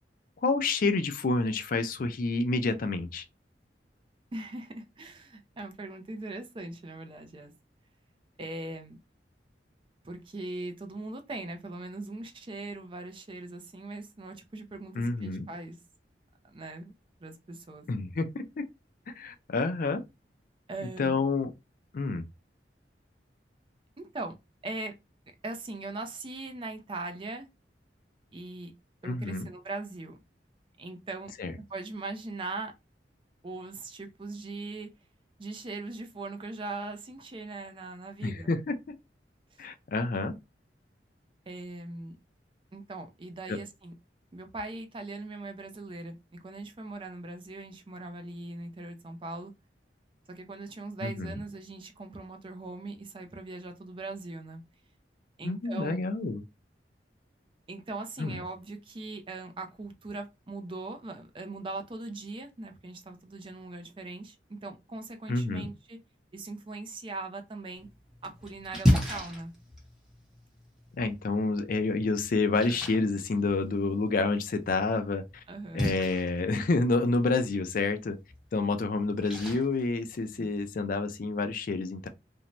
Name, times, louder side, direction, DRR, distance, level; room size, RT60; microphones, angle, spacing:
voice 1, 0.4-3.2 15.0-15.5 17.9-18.7 19.2-20.0 21.0-21.5 21.9-22.2 29.0-29.5 31.4-31.5 38.2-39.0 39.6-40.3 43.5-43.6 51.0-51.3 55.4-56.4 58.2-58.4 65.3-65.7 71.0-75.2 75.7-78.2 78.5-82.1, left 3 dB, 50° left, 0.4 m, -28 dB
voice 2, 4.3-7.5 8.4-9.0 10.0-15.8 16.5-16.9 17.2-17.9 20.7-21.2 24.0-24.4 24.6-24.9 25.4-27.5 28.3-28.7 29.0-30.2 30.8-31.3 31.7-32.7 33.4-34.9 35.4-38.6 41.5-42.2 42.7-43.9 44.3-49.5 50.3-54.6 55.4-56.0 57.7-66.0 66.3-67.9 68.2-69.5 75.5-75.9 80.3-80.5, right 2 dB, 30° right, 0.4 m, -40 dB
Splash splatter, 67.8-80.8, equal, 5° right, 0.8 m, -35 dB
2.6 x 2.1 x 2.9 m
head